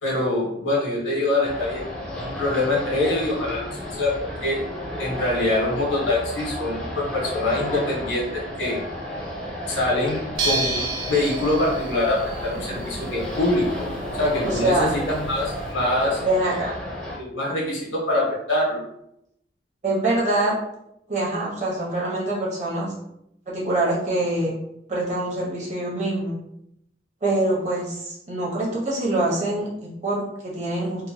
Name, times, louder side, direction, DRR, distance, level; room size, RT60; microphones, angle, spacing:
voice 1, 0.0-1.8 2.1-4.6 5.0-8.8 9.7-13.7 14.1-16.2 17.2-18.8, left 2 dB, 90° left, -4 dB, 1.1 m, -24 dB
sound 1, 1.4-17.2, left 1 dB, 5° left, 0.5 m, -32 dB
sound 2, 10.4-15.7, right 3 dB, 85° right, 0.5 m, -32 dB
voice 2, 14.4-14.9 16.2-16.7 19.8-20.5 21.1-22.9 23.5-24.5 24.9-26.4 27.2-31.1, right 2 dB, 40° right, -5 dB, 0.8 m, -24 dB
2.9 x 2.2 x 2.6 m, 0.78 s
head